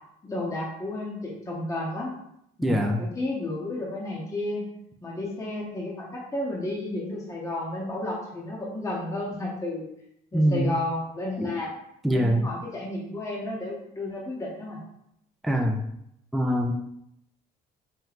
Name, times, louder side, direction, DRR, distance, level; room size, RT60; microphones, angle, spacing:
voice 1, 0.2-2.2 2.6-4.7 5.0-9.9 10.3-11.7 12.1-14.8, left 2 dB, 20° left, -3 dB, 0.8 m, -32 dB
voice 2, 2.6-3.0 10.3-10.8 11.4-11.5 12.0-12.5 15.4-15.8 16.3-16.7, equal, ahead, 2 dB, 0.4 m, -23 dB
4.4 x 2.1 x 3.9 m, 0.76 s
cardioid pair, 110°, 17 cm